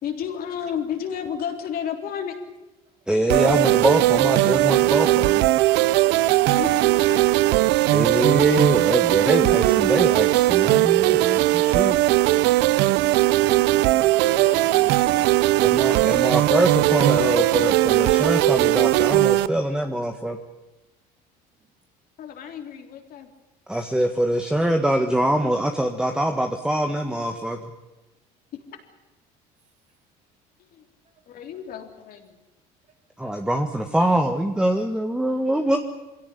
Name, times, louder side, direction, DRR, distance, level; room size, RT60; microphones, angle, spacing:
voice 1, 0.0-2.4 6.5-7.5 14.2-14.6 22.2-23.3 30.6-30.9 31.3-32.4, left 8 dB, 55° left, 3 dB, 3.7 m, -32 dB
voice 2, 3.1-5.5 7.9-12.0 15.6-20.4 23.7-27.7 33.2-35.8, right 1 dB, 5° right, 4 dB, 1.6 m, -24 dB
sound 1, 3.3-19.5, right 17 dB, 75° right, 0.8 m, -19 dB
voice 3, 13.0-15.4 33.2-33.3, right 5 dB, 40° right, 4 dB, 3.8 m, -42 dB
23.0 x 17.0 x 9.9 m, 1.0 s
supercardioid pair, 105°, 18 cm